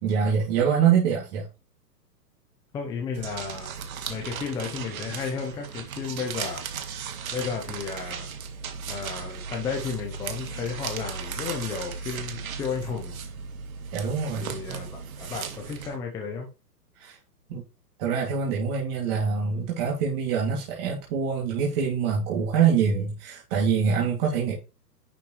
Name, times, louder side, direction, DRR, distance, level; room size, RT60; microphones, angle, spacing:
voice 1, 0.0-1.4 13.9-14.5 17.0-17.2 17.5-17.6 18.0-24.6, right 7 dB, 35° right, 2.6 m, -25 dB
voice 2, 2.7-3.7 4.1-6.6 7.3-8.3 8.9-13.2 14.4-16.5, left 6 dB, 10° left, 0.7 m, -33 dB
sound 1, 3.1-16.0, right 6 dB, 55° right, 1.7 m, -36 dB
10.5 x 5.7 x 3.2 m
hypercardioid pair, 135°, 50 cm